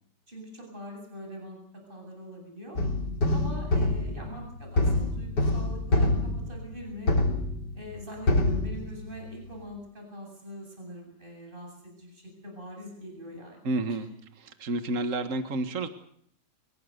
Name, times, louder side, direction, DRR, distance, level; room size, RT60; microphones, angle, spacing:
voice 1, 0.3-1.6 1.9-2.8 3.3-7.2 7.7-14.0, equal, 30° right, 2 dB, 8.4 m, -43 dB
sound 1, 2.8-8.0 8.3-9.3, left 2 dB, 90° left, 4.4 m, -26 dB
voice 2, 13.6-14.1 14.4-15.9, right 2 dB, 50° right, 9 dB, 2.1 m, -30 dB
26.0 x 22.5 x 6.8 m, 0.65 s
omnidirectional pair, 1.8 m